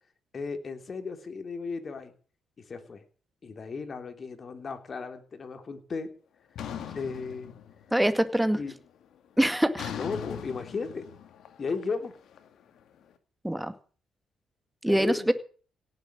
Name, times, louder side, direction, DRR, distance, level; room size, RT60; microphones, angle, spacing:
voice 1, 0.3-2.1 2.7-3.0 3.4-6.1 6.9-7.5 8.6-8.7 10.0-11.0 11.6-12.2 14.9-15.3, left 4 dB, 40° left, 6 dB, 3.4 m, -35 dB
sound 1, 6.6-8.1 8.4-8.9 9.8-12.8, left 9 dB, 70° left, 2.3 m, -40 dB
voice 2, 7.9-8.6 9.4-9.9 13.4-13.7 14.8-15.3, right 1 dB, 5° right, 10 dB, 2.1 m, -24 dB
17.5 x 8.0 x 9.6 m, 0.42 s
cardioid pair, 90°, 0 cm